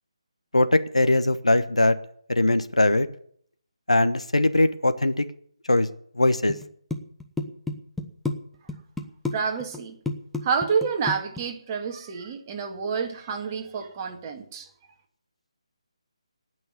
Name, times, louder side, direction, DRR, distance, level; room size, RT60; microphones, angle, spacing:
voice 1, 0.5-2.0 2.3-3.1 3.9-5.3 5.7-5.9 6.2-6.5, left 2 dB, 85° left, 10 dB, 1.2 m, -21 dB
sound 1, 6.5-6.7 6.9-8.4 8.7-9.4 9.6-9.8 10.1-11.4, left 3 dB, 5° left, 0.8 m, -29 dB
voice 2, 9.3-10.0 10.4-14.7, right 6 dB, 25° right, 3 dB, 2.0 m, -28 dB
18.0 x 6.3 x 9.5 m, 0.64 s
figure-of-eight pair, 150°, 3 cm